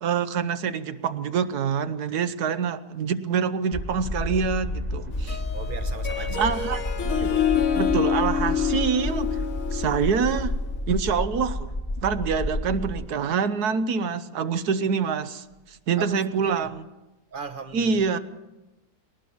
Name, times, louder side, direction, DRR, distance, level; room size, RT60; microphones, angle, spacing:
voice 1, 0.0-5.4 6.2-7.4 7.7-9.4 9.7-10.5 10.9-11.7 12.0-16.8 17.7-18.2, right 6 dB, 70° right, 11 dB, 1.4 m, -26 dB
sound 1, 3.7-13.1, left 1 dB, 25° left, 1.4 m, -30 dB
Harp, 5.1-10.7, left 8 dB, 55° left, 1.8 m, -27 dB
voice 2, 5.5-6.6 7.0-7.5 16.0-16.7 17.3-18.2, right 5 dB, 35° right, 10 dB, 1.1 m, -38 dB
21.0 x 18.5 x 7.1 m, 1.1 s
omnidirectional pair, 1.8 m